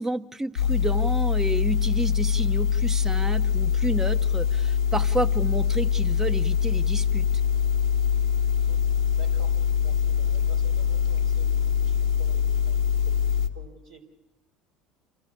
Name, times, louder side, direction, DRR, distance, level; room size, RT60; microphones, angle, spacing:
voice 1, 0.0-7.3, right 2 dB, 15° right, 10 dB, 0.9 m, -30 dB
sound 1, 0.6-13.5, left 7 dB, 90° left, 0.9 m, -23 dB
sound 2, 3.0-13.5, right 2 dB, 40° right, 2.8 m, -51 dB
voice 2, 9.2-13.2 13.5-14.0, right 4 dB, 75° right, 4 dB, 4.2 m, -50 dB
28.0 x 14.0 x 8.6 m, 0.98 s
hypercardioid pair, 70°, 3 cm